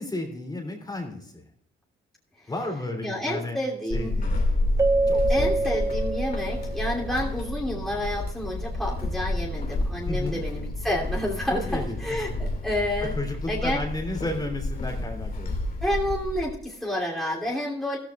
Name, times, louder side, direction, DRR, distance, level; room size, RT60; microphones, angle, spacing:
voice 1, 0.0-1.4 2.5-3.6 3.9-4.4 5.1-5.5 10.1-10.4 11.5-12.0 13.0-15.5, left 2 dB, 20° left, 3 dB, 3.0 m, -33 dB
voice 2, 3.0-4.1 5.3-13.1 13.5-13.8 15.8-18.0, left 1 dB, ahead, -4 dB, 2.9 m, -29 dB
Walk footsteps / Squeak, 3.9-16.6, left 2 dB, 45° left, 2.2 m, -30 dB
Keyboard (musical), 4.8-7.2, right 3 dB, 15° right, 0.4 m, -26 dB
14.5 x 14.0 x 2.4 m, 0.69 s
cardioid pair, 90°, 20 cm